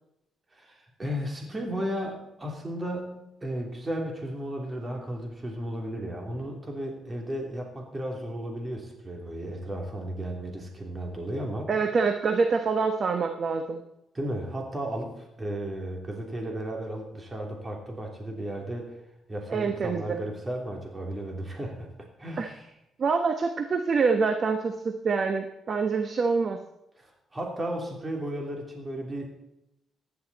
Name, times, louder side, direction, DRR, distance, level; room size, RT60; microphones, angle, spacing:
voice 1, 0.5-11.7 14.1-18.9 19.3-21.9 22.2-22.6 27.0-29.3, right 1 dB, 25° right, 1 dB, 3.1 m, -34 dB
voice 2, 11.7-13.8 19.5-20.2 22.4-22.5 23.0-26.6, right 4 dB, 45° right, 6 dB, 1.1 m, -26 dB
15.0 x 11.0 x 4.2 m, 0.87 s
cardioid pair, 90°, 0 cm